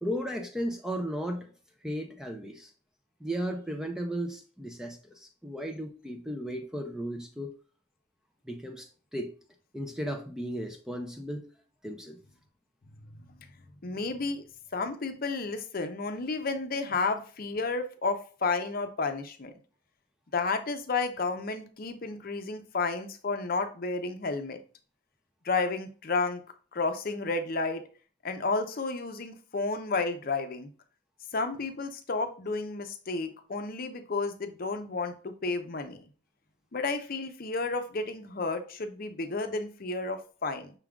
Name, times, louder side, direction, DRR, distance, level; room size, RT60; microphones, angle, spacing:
voice 1, 0.0-1.5 1.8-2.7 3.2-7.5 8.5-9.3 9.7-11.4 11.8-12.2, equal, 5° right, 0.4 m, -35 dB
voice 2, 13.8-14.4 14.7-19.5 20.3-24.6 25.4-26.4 26.7-27.8 28.2-30.7 31.3-36.0 36.7-40.7, left 3 dB, 45° left, 0.6 m, -31 dB
5.8 x 3.6 x 2.3 m
head